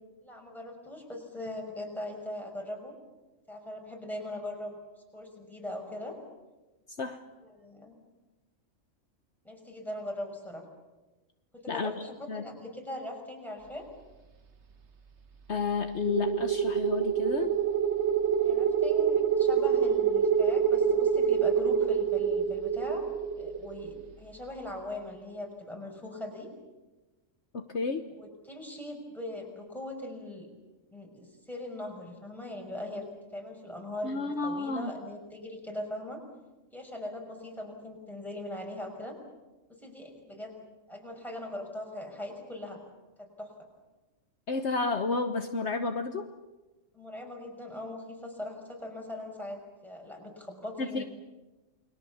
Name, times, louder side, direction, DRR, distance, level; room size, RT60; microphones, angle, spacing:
voice 1, 0.2-2.9 3.5-4.8 5.1-6.1 7.4-8.0 9.4-10.7 11.5-13.9 18.4-23.1 23.4-26.5 28.2-30.5 30.9-33.0 33.3-36.2 36.7-39.2 39.7-42.8 43.2-43.5 46.9-51.0, left 1 dB, ahead, 0 dB, 5.8 m, -40 dB
voice 2, 15.5-17.5 27.5-28.0 34.0-34.9 44.5-46.3 50.8-51.0, left 4 dB, 60° left, 6 dB, 1.4 m, -31 dB
sound 1, 16.1-24.1, right 7 dB, 60° right, 1.6 m, -26 dB
29.5 x 22.0 x 7.2 m, 1.1 s
omnidirectional pair, 1.4 m